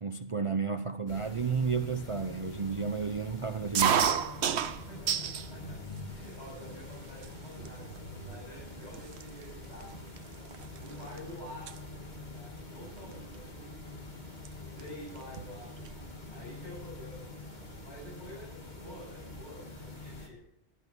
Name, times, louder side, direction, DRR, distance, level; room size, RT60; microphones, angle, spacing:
voice 1, 0.0-4.1, right 5 dB, 35° right, 0.7 m, -32 dB
sound 1, 1.1-20.3, left 2 dB, 40° left, 3.0 m, -45 dB
sound 2, 3.7-5.5 5.9-6.6 7.2-7.3 7.6-8.0 8.6-8.7 8.9-11.2 11.5-11.8 13.1-13.3 14.4-14.5 14.8-14.9 15.2-16.0, right 8 dB, 75° right, 1.1 m, -31 dB
voice 2, 4.9-5.8 6.1-9.9 10.8-13.9 14.8-17.3 17.8-20.4, left 1 dB, 80° left, 8.5 m, -49 dB
17.0 x 13.0 x 6.2 m
omnidirectional pair, 1.1 m